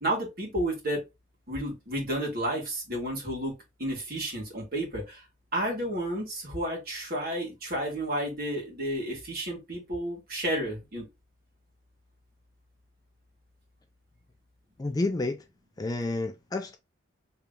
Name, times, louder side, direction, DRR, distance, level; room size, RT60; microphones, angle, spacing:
voice 1, 0.0-1.0 1.5-5.2 5.5-11.1, right 1 dB, 50° right, 1.9 m, -31 dB
voice 2, 14.8-15.4 15.8-16.8, left 2 dB, 20° left, 0.4 m, -30 dB
3.3 x 2.9 x 3.7 m
head